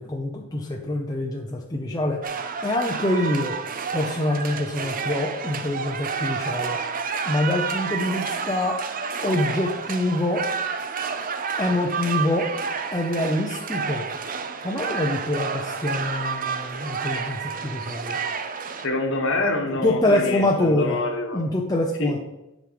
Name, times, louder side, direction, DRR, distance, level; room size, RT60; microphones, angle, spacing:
voice 1, 0.0-2.2 2.6-3.5 3.9-6.8 7.3-8.8 9.2-10.4 11.6-12.5 12.9-14.0 14.6-18.2 19.8-21.0 21.3-22.2, left 1 dB, 20° left, -1 dB, 0.7 m, -25 dB
sound 1, 2.2-18.9, right 5 dB, 40° right, 0.6 m, -30 dB
voice 2, 18.8-21.4 22.0-22.1, left 2 dB, 65° left, 2 dB, 1.4 m, -26 dB
7.8 x 5.2 x 5.2 m, 0.90 s
head